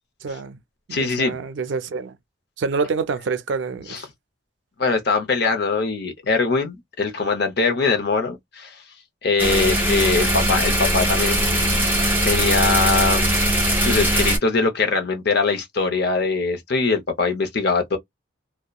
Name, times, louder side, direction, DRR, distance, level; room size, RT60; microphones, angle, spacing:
voice 1, 0.2-0.6 0.9-2.2 2.6-4.1, right 4 dB, 65° right, 0.4 m, -27 dB
voice 2, 0.9-1.4 3.9-4.0 4.8-8.8 9.2-11.8 12.2-18.0, left 4 dB, 55° left, 0.7 m, -22 dB
sound 1, 9.4-14.4, right 1 dB, 10° right, 0.9 m, -20 dB
2.7 x 2.1 x 2.3 m
head